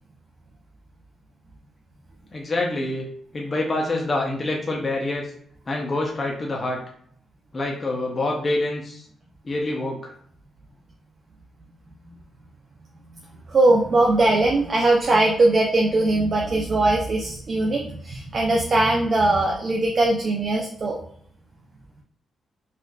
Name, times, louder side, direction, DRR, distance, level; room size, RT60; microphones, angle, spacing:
voice 1, 2.3-3.1 3.3-5.3 5.7-6.8 7.5-9.0 9.4-10.1, left 2 dB, 30° left, -1 dB, 0.6 m, -26 dB
voice 2, 13.5-21.0, right 2 dB, 40° right, -1 dB, 0.5 m, -20 dB
4.3 x 2.5 x 2.2 m, 0.63 s
cardioid pair, 130°, 0 cm